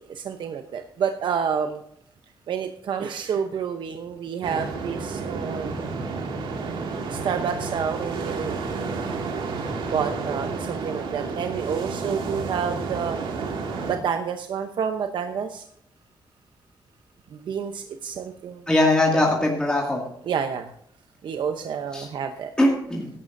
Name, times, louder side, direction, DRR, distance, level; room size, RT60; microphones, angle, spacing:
voice 1, 0.0-1.8 2.5-5.8 7.1-8.6 8.8-9.0 9.9-13.2 13.9-15.6 17.3-18.7 19.1-19.3 20.2-20.7 21.2-22.5, right 7 dB, 70° right, 6 dB, 0.8 m, -29 dB
sound 1, 4.4-14.0, right 4 dB, 90° right, 2.2 m, -31 dB
voice 2, 18.7-20.0 21.9-22.1 22.6-23.1, left 1 dB, 10° left, -2 dB, 2.2 m, -21 dB
16.0 x 11.0 x 2.6 m, 0.72 s
cardioid pair, 100°, 8 cm